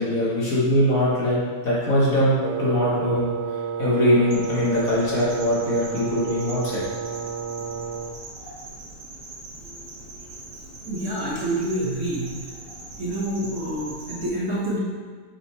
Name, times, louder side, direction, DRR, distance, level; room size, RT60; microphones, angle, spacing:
voice 1, 0.0-1.4 1.6-3.3 3.8-6.8, left 1 dB, 60° left, -7 dB, 2.1 m, -21 dB
Wind instrument woodwind instrument, 2.4-8.2, right 6 dB, 90° right, 1.2 m, -31 dB
sound 1, 4.3-14.2, right 2 dB, 65° right, 1.7 m, -41 dB
voice 2, 9.6-12.4 13.0-14.8, right 1 dB, 50° right, -6 dB, 1.7 m, -29 dB
5.2 x 4.8 x 4.2 m, 1.5 s
omnidirectional pair, 1.7 m